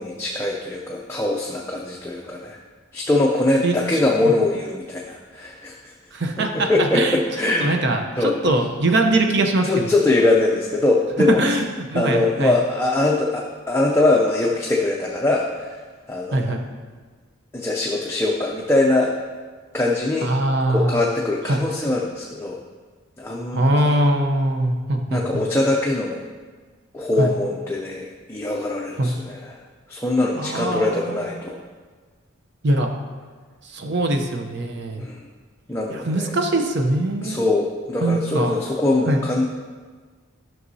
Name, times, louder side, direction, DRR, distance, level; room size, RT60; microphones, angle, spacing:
voice 1, 0.0-2.6 2.9-5.9 6.5-7.8 8.2-8.3 9.6-11.4 12.0-15.8 16.1-16.4 17.5-19.1 19.7-20.3 20.7-22.6 23.2-23.9 25.1-26.2 26.9-29.6 29.9-31.6 35.0-35.2 35.7-36.3 37.2-39.5, left 2 dB, 10° left, -2 dB, 0.4 m, -22 dB
voice 2, 3.6-4.3 6.1-7.2 7.6-9.9 11.4-11.6 11.9-12.5 16.3-16.6 20.2-21.0 21.5-21.6 23.5-25.4 27.2-27.3 29.0-29.1 30.3-31.2 32.6-32.9 33.7-35.1 35.9-37.4 38.0-38.5 39.1-39.2, right 1 dB, 55° right, 4 dB, 0.7 m, -22 dB
11.0 x 6.0 x 2.7 m, 1.5 s
head